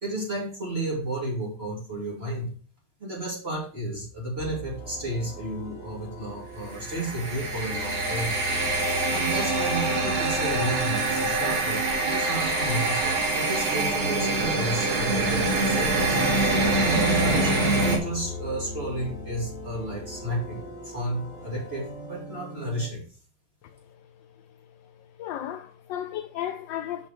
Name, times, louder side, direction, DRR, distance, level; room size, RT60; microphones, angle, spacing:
voice 1, 0.0-2.5 3.0-8.3 9.1-16.2 16.8-23.0, right 1 dB, 30° right, 2.7 m, -32 dB
Church organ, 4.4-22.9, left 2 dB, 40° left, 2.1 m, -39 dB
sound 1, 6.7-18.0, right 2 dB, 85° right, 2.9 m, -25 dB
voice 2, 24.8-27.1, left 11 dB, 75° left, 1.2 m, -35 dB
6.1 x 5.7 x 5.1 m
omnidirectional pair, 2.3 m